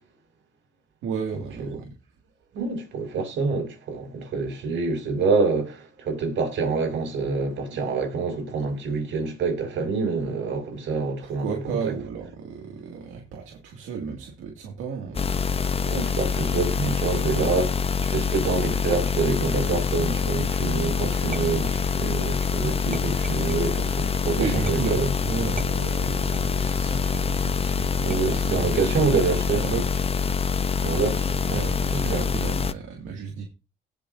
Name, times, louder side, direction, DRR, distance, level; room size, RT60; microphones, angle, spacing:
voice 1, 1.0-1.8 11.2-15.7 24.4-28.9 29.5-30.0 31.5-33.5, right 6 dB, 90° right, 2.1 m, -33 dB
voice 2, 2.5-11.9 15.9-17.8 18.0-25.1 28.0-29.7 30.8-31.6 31.9-32.3, right 4 dB, 75° right, 5.3 m, -27 dB
sound 1, 15.1-32.7, left 5 dB, 30° left, 0.6 m, -25 dB
sound 2, 21.3-22.3 22.9-23.8 24.7-25.1 25.6-26.6 27.1-27.5 28.1-28.8 29.5-30.0, right 4 dB, 45° right, 5.0 m, -39 dB
18.5 x 6.4 x 2.6 m
cardioid pair, 90°, 20 cm